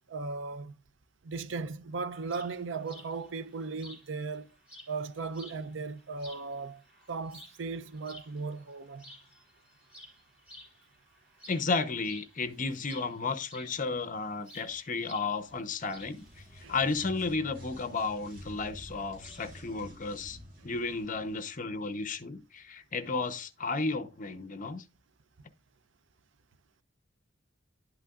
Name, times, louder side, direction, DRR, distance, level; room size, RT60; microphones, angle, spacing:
voice 1, 0.1-0.7 1.2-4.5 4.9-6.8 7.1-9.1 16.6-16.7, right 4 dB, 65° right, 0.6 m, -37 dB
sound 1, 2.2-19.6, left 1 dB, 5° right, 5.9 m, -55 dB
voice 2, 11.5-16.2 16.5-24.8, left 4 dB, 40° left, 0.8 m, -33 dB
sound 2, 15.8-21.5, equal, 50° right, 5.3 m, -50 dB
11.0 x 8.2 x 2.4 m
head